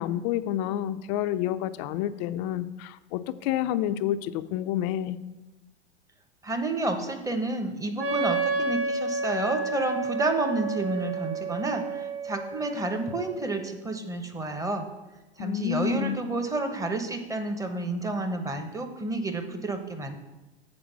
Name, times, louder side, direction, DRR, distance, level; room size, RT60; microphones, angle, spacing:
voice 1, 0.0-5.2 15.4-16.2, left 12 dB, 40° left, 12 dB, 0.5 m, -29 dB
voice 2, 6.4-14.9 15.4-20.1, right 2 dB, 10° right, 5 dB, 0.9 m, -30 dB
Wind instrument woodwind instrument, 8.0-13.6, right 3 dB, 30° right, 1.2 m, -31 dB
7.4 x 4.9 x 6.1 m, 1.1 s
hypercardioid pair, 95°, 32 cm